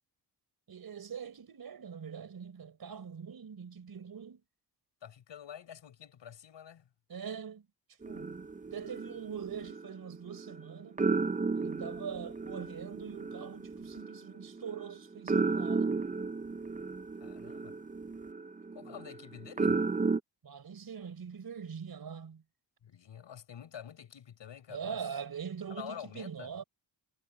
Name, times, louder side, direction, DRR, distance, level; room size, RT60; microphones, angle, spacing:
voice 1, 0.7-4.4 7.1-7.7 8.0-11.0 11.6-16.0 20.4-22.4 24.7-26.6, right 7 dB, 55° right, 4.2 m, -43 dB
voice 2, 5.0-6.9 17.2-17.7 18.7-19.8 22.8-25.1 25.7-26.5, left 9 dB, 85° left, 6.8 m, -48 dB
sound 1, 8.0-10.6 11.0-20.2, right 4 dB, 20° right, 0.6 m, -34 dB
wide cardioid pair, 110°, 43 cm